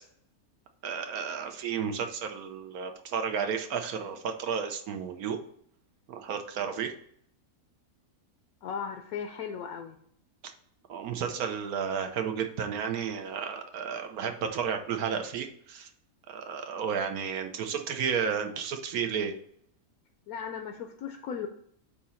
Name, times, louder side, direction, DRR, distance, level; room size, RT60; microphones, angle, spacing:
voice 1, 0.8-5.4 6.1-6.9 10.9-15.9 16.3-19.3, right 7 dB, 80° right, 6 dB, 1.3 m, -32 dB
voice 2, 8.6-10.0 20.3-21.5, left 7 dB, 80° left, 5 dB, 1.1 m, -36 dB
8.6 x 2.9 x 5.6 m, 0.65 s
omnidirectional pair, 1.5 m